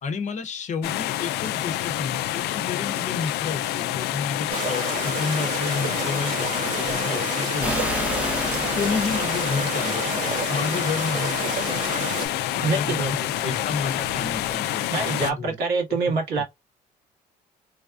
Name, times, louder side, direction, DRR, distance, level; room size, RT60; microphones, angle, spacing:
voice 1, 0.0-8.5 8.7-12.1 12.5-15.6 16.0-16.4, left 5 dB, 45° left, 0.7 m, -31 dB
sound 1, 0.8-15.3, left 13 dB, 80° left, 0.4 m, -28 dB
sound 2, 4.5-12.3, right 4 dB, 45° right, 1.6 m, -30 dB
sound 3, 7.6-14.5, right 1 dB, 10° right, 0.6 m, -35 dB
voice 2, 12.6-13.1 13.4-13.6 14.9-16.4, right 4 dB, 70° right, 1.8 m, -25 dB
3.3 x 2.3 x 2.4 m
cardioid pair, 110°, 17 cm